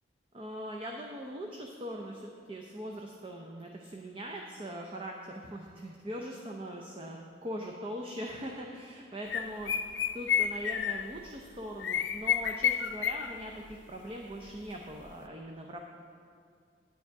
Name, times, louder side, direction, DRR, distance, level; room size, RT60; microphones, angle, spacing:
voice 1, 0.3-9.7 10.1-15.8, equal, 30° right, 1 dB, 0.6 m, -41 dB
sound 1, 9.3-11.3 11.8-13.3 13.6-13.7 14.5-14.6 15.1-15.2, left 8 dB, 75° left, 0.5 m, -30 dB
9.8 x 9.4 x 4.6 m, 2.2 s
head